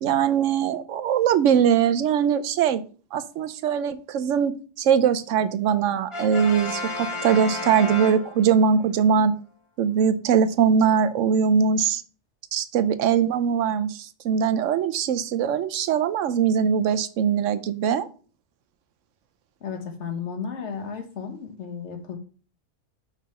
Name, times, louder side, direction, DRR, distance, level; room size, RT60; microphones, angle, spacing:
voice 1, 0.0-2.8 3.1-4.5 4.8-9.3 9.8-12.0 12.5-18.1, right 7 dB, 90° right, 12 dB, 1.0 m, -21 dB
Brass instrument, 6.1-8.8, left 1 dB, 30° left, 0.8 m, -32 dB
voice 2, 19.6-22.2, left 6 dB, 70° left, 5 dB, 1.4 m, -33 dB
5.8 x 3.6 x 5.6 m, 0.39 s
omnidirectional pair, 1.2 m